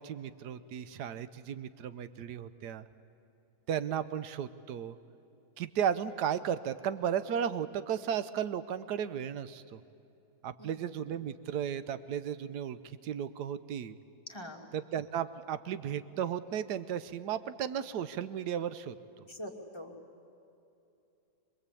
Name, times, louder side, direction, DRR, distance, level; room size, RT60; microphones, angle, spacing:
voice 1, 0.0-2.8 3.7-5.0 5.6-9.8 10.4-14.0 14.7-18.9, right 9 dB, 85° right, 13 dB, 1.3 m, -35 dB
voice 2, 10.6-11.0 14.3-14.6 19.3-20.0, left 1 dB, 15° left, 0 dB, 2.3 m, -44 dB
25.5 x 21.0 x 8.4 m, 2.8 s
omnidirectional pair, 1.7 m